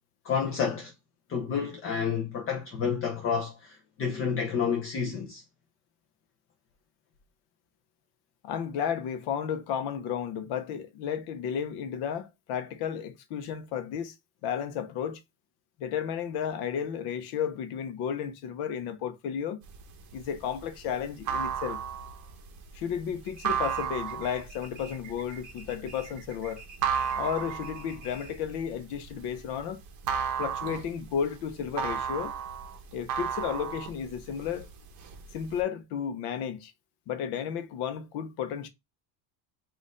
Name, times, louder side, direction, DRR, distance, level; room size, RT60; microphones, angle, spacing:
voice 1, 0.2-0.9 1.3-5.4, left 6 dB, 30° left, 0.6 m, -30 dB
voice 2, 8.4-14.1 14.4-15.2 15.8-19.6 20.1-21.8 22.7-26.6 27.2-29.8 30.4-32.3 32.9-34.7 35.3-36.7 37.1-38.7, left 8 dB, 60° left, 0.8 m, -33 dB
sound 1, 19.7-29.6 29.9-34.6 35.0-35.6, right 7 dB, 40° right, 0.8 m, -33 dB
sound 2, 23.2-28.5, right 4 dB, 20° right, 1.2 m, -49 dB
4.1 x 2.6 x 3.6 m
cardioid pair, 180°, 43 cm